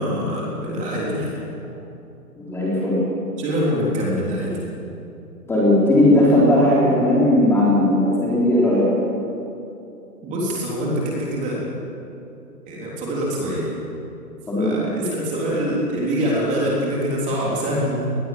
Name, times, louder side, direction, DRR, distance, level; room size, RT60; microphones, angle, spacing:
voice 1, 0.0-1.4 3.4-4.6 10.2-11.6 12.7-13.7 14.6-18.1, equal, 15° right, -4 dB, 3.7 m, -24 dB
voice 2, 2.3-3.0 5.5-8.9 14.5-15.0, left 1 dB, 5° left, -6 dB, 3.7 m, -17 dB
23.5 x 20.5 x 7.6 m, 2.7 s
hypercardioid pair, 165°, 47 cm